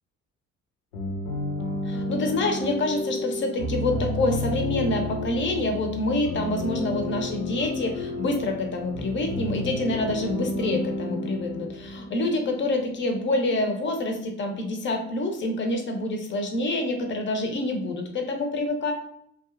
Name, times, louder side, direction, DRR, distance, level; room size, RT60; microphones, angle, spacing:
sound 1, 0.9-12.6, left 1 dB, 75° left, 0.6 m, -31 dB
voice 1, 1.9-18.9, left 2 dB, 30° left, 4 dB, 0.5 m, -27 dB
2.7 x 2.2 x 2.3 m, 0.71 s
figure-of-eight pair, 50°, 37 cm